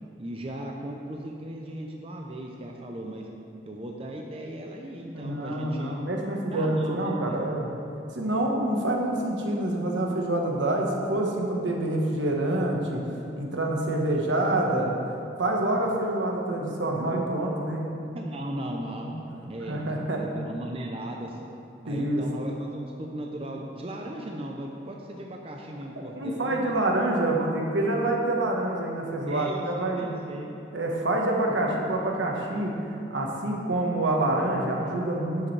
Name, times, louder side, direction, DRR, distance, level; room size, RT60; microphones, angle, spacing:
voice 1, 0.2-3.3 3.7-6.0 6.5-7.5 18.1-19.1 19.5-19.8 20.1-21.4 21.8-26.7 29.3-30.6, right 1 dB, 30° right, 0 dB, 0.6 m, -37 dB
voice 2, 5.1-7.7 8.1-13.0 13.4-14.9 15.4-17.8 19.0-19.1 19.7-20.2 21.9-22.2 26.1-30.1 30.7-35.5, right 1 dB, 85° right, 0 dB, 1.3 m, -27 dB
11.5 x 7.5 x 3.3 m, 2.8 s
head